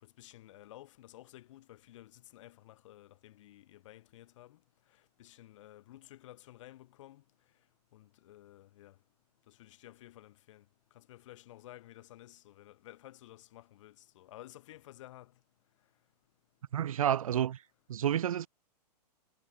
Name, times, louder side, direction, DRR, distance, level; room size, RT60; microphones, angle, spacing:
voice 1, 0.0-4.6 5.2-7.2 7.9-8.9 9.5-10.6 10.9-15.3, left 14 dB, 50° left, 6.0 m, -53 dB
voice 2, 16.7-17.6 17.9-18.5, right 10 dB, 55° right, 0.9 m, -29 dB
figure-of-eight pair, 110°, 21 cm